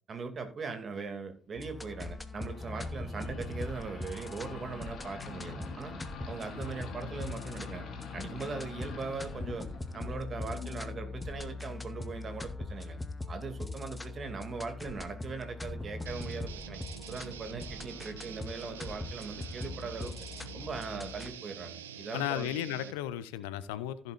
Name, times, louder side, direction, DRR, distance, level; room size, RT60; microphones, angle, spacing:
voice 1, 0.1-5.9 6.3-7.9 8.1-9.7 9.9-13.0 13.3-16.8 17.1-20.1 20.5-22.5, right 4 dB, 45° right, 2.6 m, -40 dB
sound 1, 1.5-21.3, left 2 dB, 20° left, 1.4 m, -41 dB
sound 2, 2.4-11.7, left 4 dB, 55° left, 2.5 m, -45 dB
sound 3, 16.1-22.9, right 9 dB, 80° right, 0.6 m, -46 dB
voice 2, 22.1-24.1, left 12 dB, 75° left, 0.7 m, -35 dB
15.5 x 8.1 x 2.6 m
figure-of-eight pair, 45°, 0 cm